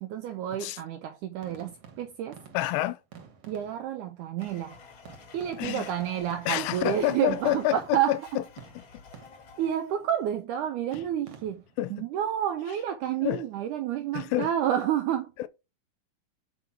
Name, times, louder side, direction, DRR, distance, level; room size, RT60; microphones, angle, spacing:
voice 1, 0.0-2.4 3.5-4.8 5.3-8.4 9.6-11.6 11.9-15.3, right 10 dB, 80° right, 1.8 m, -30 dB
sound 1, 1.4-4.1 4.4-8.3 8.6-9.7 10.9-11.9, right 7 dB, 60° right, 1.9 m, -51 dB
voice 2, 2.5-3.0 5.6-5.9 6.5-8.2 11.8-12.1 13.2-13.4 14.1-14.5 15.4-15.5, left 15 dB, 80° left, 2.2 m, -28 dB
Domestic sounds home sounds, 4.4-10.1, left 4 dB, 50° left, 1.7 m, -51 dB
5.9 x 5.0 x 5.9 m
omnidirectional pair, 4.2 m